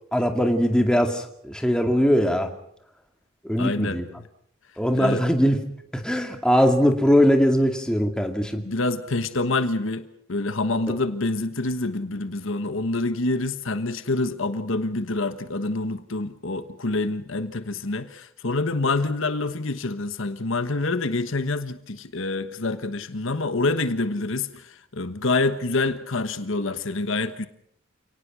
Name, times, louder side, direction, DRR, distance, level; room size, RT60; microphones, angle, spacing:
voice 1, 0.1-2.5 3.4-4.0 4.8-5.6 5.9-8.6, equal, 5° left, 2.3 m, -21 dB
voice 2, 3.6-4.0 5.0-5.2 8.6-27.5, left 2 dB, 65° left, 1.3 m, -27 dB
29.0 x 18.5 x 6.2 m
head